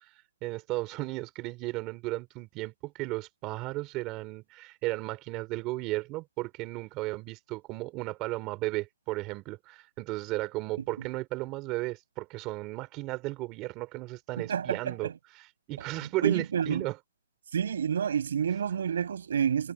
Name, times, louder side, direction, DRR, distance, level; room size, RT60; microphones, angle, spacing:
voice 1, 0.0-17.0, right 20 dB, 20° right, 4.1 m, -35 dB
voice 2, 14.4-15.1 16.0-16.9 17.5-19.7, right 8 dB, 60° right, 6.8 m, -29 dB
hypercardioid pair, 170°, 0 cm